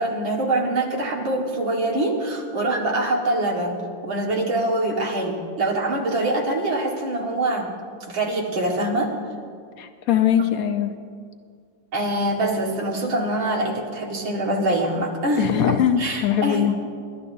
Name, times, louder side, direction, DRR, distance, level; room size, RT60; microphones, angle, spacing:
voice 1, 0.0-7.8 8.1-9.1 10.4-10.5 11.9-16.7, right 1 dB, 80° right, -1 dB, 2.6 m, -24 dB
voice 2, 9.8-10.9 15.4-16.8, left 9 dB, 65° left, 7 dB, 0.9 m, -21 dB
28.5 x 12.0 x 2.7 m, 2.2 s
omnidirectional pair, 2.1 m